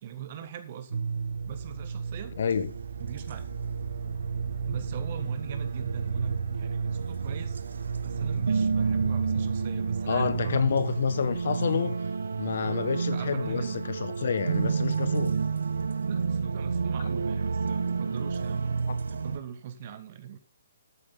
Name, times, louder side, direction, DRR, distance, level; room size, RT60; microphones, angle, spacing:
voice 1, 0.0-1.1 1.4-2.3 3.0-3.5 4.6-10.8 12.6-13.8 16.1-18.7 19.1-20.4, right 9 dB, 35° right, 1.5 m, -41 dB
sound 1, 0.9-19.4, right 5 dB, 80° right, 1.4 m, -30 dB
voice 2, 2.4-2.7 10.1-12.0 12.4-15.3, left 6 dB, 55° left, 1.4 m, -28 dB
13.5 x 8.6 x 3.9 m
hypercardioid pair, 170°, 0 cm